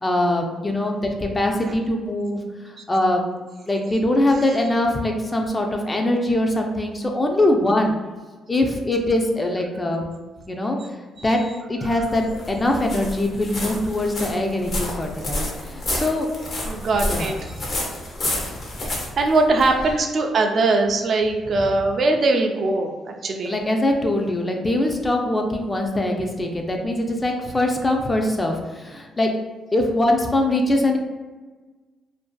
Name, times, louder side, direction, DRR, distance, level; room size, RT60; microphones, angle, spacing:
voice 1, 0.0-2.4 2.6-3.2 3.7-8.0 8.5-10.0 10.5-10.8 11.2-11.4 11.7-16.3 17.0-17.7 23.4-29.3 29.7-31.0, left 1 dB, 20° left, 2 dB, 0.4 m, -22 dB
sound 1, 11.8-20.0, left 1 dB, 50° left, 0.7 m, -30 dB
voice 2, 16.7-17.5 18.9-23.6, right 3 dB, 50° right, 3 dB, 0.3 m, -21 dB
2.6 x 2.3 x 2.2 m, 1.3 s
cardioid pair, 90°, 0 cm